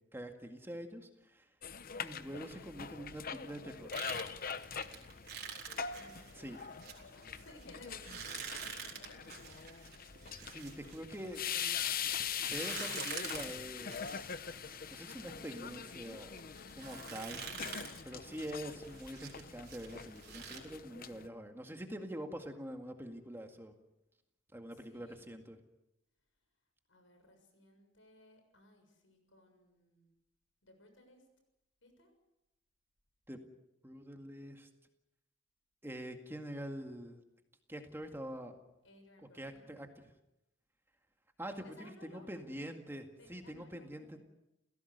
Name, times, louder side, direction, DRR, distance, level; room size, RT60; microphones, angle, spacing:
voice 1, 0.1-1.5 2.0-3.9 6.3-6.6 10.4-11.4 12.4-14.3 14.9-16.3 16.8-17.4 18.0-23.7 24.5-25.6 33.3-33.4 33.8-34.7 35.8-37.2 37.7-38.5 39.3-40.1 41.4-41.5 41.8-44.2, equal, 10° right, 4 dB, 2.0 m, -45 dB
sound 1, 1.6-21.3, left 7 dB, 50° left, 0.9 m, -43 dB
sound 2, 3.9-11.8 12.3-20.6, right 7 dB, 55° right, 4.7 m, -47 dB
voice 2, 5.9-9.2 10.1-10.6 24.7-25.4 26.9-30.1 30.6-31.2 31.8-32.1 38.8-39.7 41.5-42.8 43.2-44.2, left 1 dB, 80° left, 5 dB, 6.9 m, -60 dB
30.0 x 16.5 x 6.7 m, 0.90 s
head